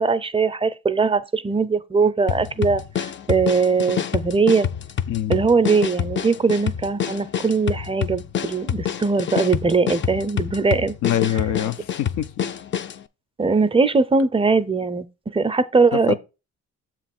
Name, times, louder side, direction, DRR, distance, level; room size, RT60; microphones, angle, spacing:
voice 1, 0.0-4.7 5.3-10.9 13.4-15.1 15.3-16.1, right 4 dB, 20° right, 0.5 m, -20 dB
sound 1, 2.3-13.0, left 8 dB, 40° left, 0.5 m, -27 dB
voice 2, 5.1-5.4 11.0-12.3 15.9-16.1, left 11 dB, 80° left, 0.6 m, -24 dB
7.1 x 3.0 x 5.9 m
cardioid pair, 90°, 30 cm